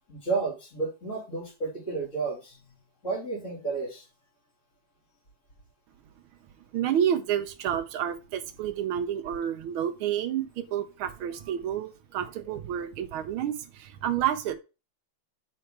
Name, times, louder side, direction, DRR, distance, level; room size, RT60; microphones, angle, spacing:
voice 1, 0.1-2.6 3.0-4.1, right 4 dB, 35° left, -2 dB, 3.0 m, -32 dB
voice 2, 6.7-14.6, right 10 dB, 85° right, 8 dB, 1.6 m, -29 dB
4.5 x 4.3 x 4.9 m, 0.29 s
omnidirectional pair, 2.2 m